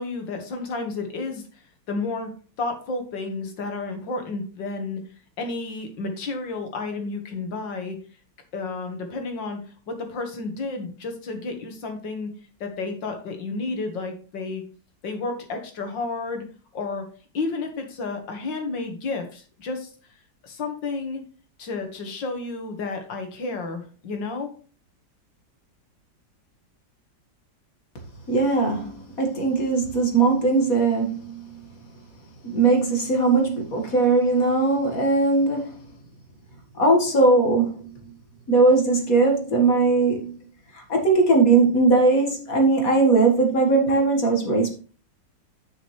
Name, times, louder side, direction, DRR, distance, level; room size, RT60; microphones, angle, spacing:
voice 1, 0.0-2.3 2.6-5.0 5.4-8.0 8.5-9.6 9.9-12.3 12.6-14.6 15.0-16.5 16.7-17.1 17.3-19.9 20.4-21.2 21.6-24.5, left 3 dB, 75° left, 2.3 m, -31 dB
voice 2, 28.3-31.6 32.4-35.8 36.8-38.0 38.5-40.4 40.7-44.7, right 3 dB, 50° left, 2.1 m, -20 dB
9.9 x 6.2 x 3.2 m
omnidirectional pair, 2.0 m